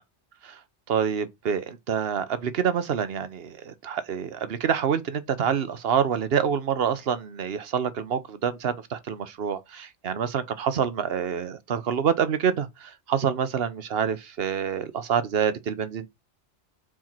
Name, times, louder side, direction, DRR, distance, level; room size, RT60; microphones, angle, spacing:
voice 1, 0.9-16.1, right 7 dB, 60° right, 1.1 m, -27 dB
4.8 x 4.4 x 5.9 m
omnidirectional pair, 1.2 m